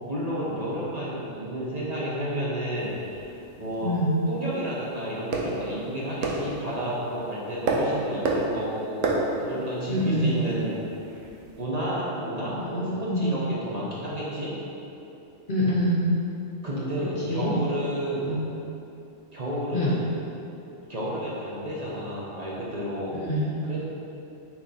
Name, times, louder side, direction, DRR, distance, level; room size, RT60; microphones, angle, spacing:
voice 1, 0.1-3.2 3.6-3.9 4.3-9.0 9.4-10.8 11.6-14.5 16.6-18.3 19.3-20.0 20.9-23.2 23.7-23.8, equal, 30° right, -8 dB, 1.2 m, -31 dB
sound 1, 2.8-11.6, right 2 dB, 80° right, 1.2 m, -32 dB
voice 2, 3.8-4.2 9.9-10.3 12.5-13.3 15.5-16.1 17.3-17.5 18.2-18.4 19.7-19.9 23.2-23.6, equal, 45° left, -5 dB, 1.0 m, -25 dB
6.1 x 4.4 x 4.3 m, 2.8 s
omnidirectional pair, 1.3 m